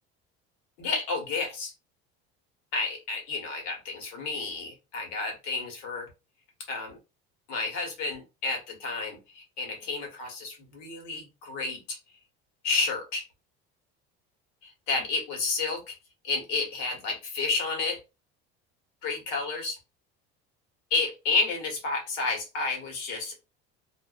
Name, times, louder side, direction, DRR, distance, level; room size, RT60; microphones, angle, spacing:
voice 1, 0.8-1.7 2.7-6.1 6.7-7.0 7.5-12.0 12.6-13.2 14.6-15.9 16.2-18.0 19.0-19.8 20.9-23.3, left 4 dB, 85° left, 1 dB, 1.3 m, -31 dB
2.5 x 2.0 x 2.4 m, 0.27 s
cardioid pair, 115°, 29 cm